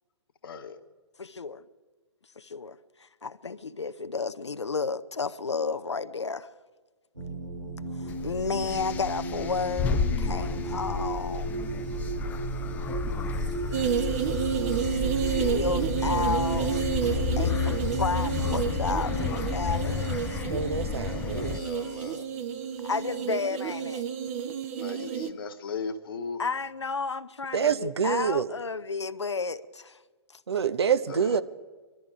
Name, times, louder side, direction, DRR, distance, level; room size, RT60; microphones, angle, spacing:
voice 1, 0.4-0.8 21.1-22.2 24.8-26.4 31.1-31.4, left 5 dB, 50° left, 1.3 m, -38 dB
voice 2, 1.2-1.6 2.4-6.5 8.0-11.6 15.3-20.1 22.8-24.0 26.4-30.0 30.3-30.4, left 4 dB, 75° left, 0.7 m, -32 dB
sound 1, 7.2-22.2 23.4-24.0, right 3 dB, 90° right, 2.8 m, -37 dB
sound 2, 8.1-21.6, left 5 dB, 10° left, 0.4 m, -31 dB
sound 3, 13.7-25.3, right 8 dB, 35° right, 0.8 m, -30 dB
voice 3, 20.5-21.6 27.5-28.5 30.5-31.4, right 7 dB, 65° right, 0.7 m, -26 dB
23.5 x 12.5 x 5.0 m
figure-of-eight pair, 120°, 15 cm